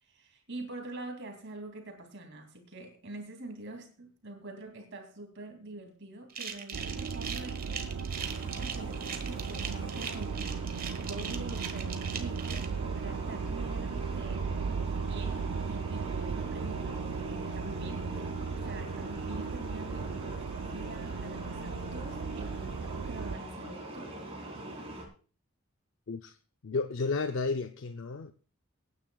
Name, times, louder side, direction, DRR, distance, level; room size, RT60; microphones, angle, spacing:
voice 1, 0.0-7.8 8.5-12.7 12.9-14.5 14.9-18.3 18.5-20.1 20.6-24.1, right 2 dB, 55° right, 2.7 m, -45 dB
sound 1, 6.3-12.7, right 7 dB, 40° right, 1.5 m, -40 dB
sound 2, 6.7-23.4, right 5 dB, 90° right, 0.5 m, -36 dB
sound 3, 8.1-25.0, right 1 dB, 25° right, 2.8 m, -43 dB
voice 2, 26.6-28.3, left 4 dB, 60° left, 0.5 m, -32 dB
24.5 x 9.6 x 2.3 m
head